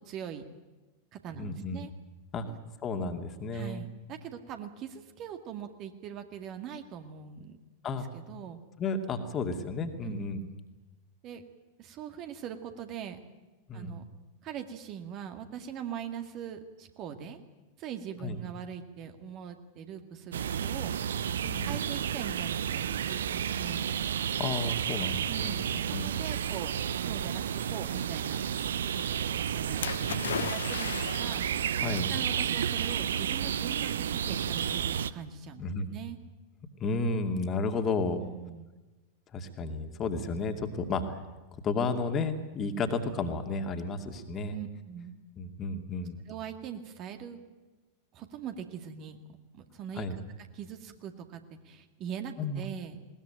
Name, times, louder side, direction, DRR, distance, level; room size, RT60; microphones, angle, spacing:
voice 1, 0.1-0.5 1.1-1.9 2.5-2.6 3.5-7.6 8.1-8.6 10.0-10.2 11.2-11.4 11.8-13.2 13.7-14.0 14.4-17.4 17.8-21.0 21.6-23.9 25.2-28.4 28.9-31.5 31.9-35.6 35.9-36.2 38.2-38.7 44.5-45.1 46.3-47.4 48.1-50.1 50.5-53.0, right 8 dB, 35° right, 7 dB, 2.0 m, -42 dB
voice 2, 1.4-1.9 2.3-2.5 2.8-3.8 7.8-8.1 8.8-10.4 13.7-14.0 18.2-18.4 21.4-21.7 24.4-25.6 25.9-26.1 30.1-30.3 31.8-32.1 35.6-35.9 36.8-38.2 39.3-41.2 41.6-44.6 45.4-46.2 50.0-50.2 52.4-52.6, left 3 dB, 30° left, 5 dB, 2.4 m, -32 dB
sound 1, 20.3-35.1, right 9 dB, 65° right, 0.7 m, -31 dB
Splash splatter, 29.8-31.6 32.6-32.7, left 9 dB, 65° left, 0.8 m, -36 dB
20.5 x 19.5 x 9.1 m, 1.2 s
figure-of-eight pair, 90°, 0 cm